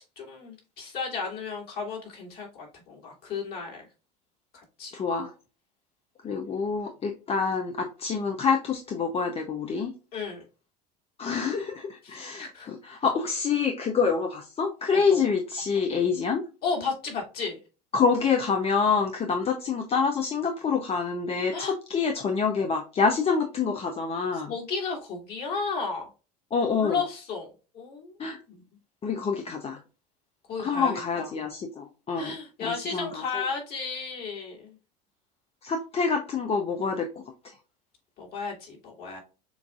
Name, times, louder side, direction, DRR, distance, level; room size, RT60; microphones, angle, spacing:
voice 1, 0.0-3.9 4.5-5.0 10.1-10.4 12.0-12.9 14.9-15.2 16.6-17.6 21.5-21.7 24.3-26.1 26.8-28.2 28.5-28.6 30.5-31.3 32.1-34.7 38.2-39.2, left 5 dB, 45° left, -1 dB, 2.5 m, -34 dB
voice 2, 4.9-5.3 6.2-9.9 11.2-16.4 17.9-24.5 26.5-27.0 28.2-28.4 29.0-29.8 30.6-32.3 32.6-33.4 35.6-37.1 37.4-37.5, left 5 dB, 30° left, 4 dB, 0.7 m, -27 dB
7.0 x 2.6 x 2.4 m, 0.32 s
hypercardioid pair, 85°, 21 cm